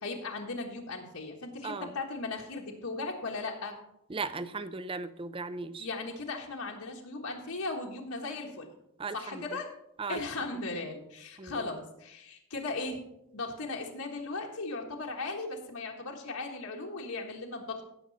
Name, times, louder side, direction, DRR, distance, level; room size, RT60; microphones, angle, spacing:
voice 1, 0.0-3.8 5.8-8.7 9.1-9.7 10.1-13.0 13.3-17.8, left 3 dB, 80° left, -1 dB, 1.5 m, -37 dB
voice 2, 1.6-1.9 4.1-5.9 9.0-9.6 10.0-10.2 10.7-10.9 11.4-11.7, right 4 dB, 25° right, 13 dB, 0.5 m, -37 dB
16.5 x 6.2 x 4.1 m, 0.82 s
head